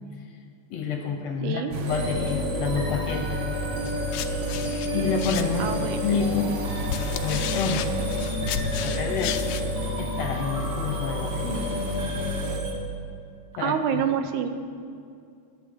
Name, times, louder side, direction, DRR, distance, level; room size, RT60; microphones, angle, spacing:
voice 1, 0.7-3.5 4.9-6.6 7.2-7.8 8.8-9.4 10.0-11.6 12.0-12.3 13.6-14.0, left 5 dB, 70° left, 4 dB, 1.7 m, -29 dB
voice 2, 1.4-1.7 5.6-6.2 13.6-14.5, right 8 dB, 85° right, 8 dB, 2.2 m, -27 dB
sound 1, 1.7-12.6, equal, 60° right, 1.6 m, -32 dB
sound 2, 1.9-12.7, left 1 dB, 45° right, 1.6 m, -32 dB
sound 3, 3.9-5.9 6.6-9.7, left 10 dB, 90° left, 1.4 m, -34 dB
21.5 x 9.1 x 3.7 m, 2.3 s
omnidirectional pair, 3.5 m